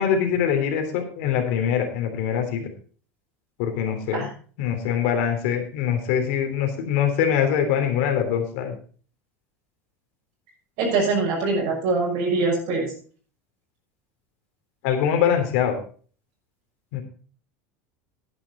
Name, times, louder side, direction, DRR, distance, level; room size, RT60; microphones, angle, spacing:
voice 1, 0.0-2.7 3.6-4.3 4.6-8.7 14.8-15.8 16.9-17.0, left 8 dB, 70° left, 5 dB, 3.2 m, -23 dB
voice 2, 10.8-12.9, right 3 dB, 65° right, -2 dB, 6.2 m, -23 dB
11.0 x 10.5 x 4.2 m, 0.42 s
hypercardioid pair, 100°, 7 cm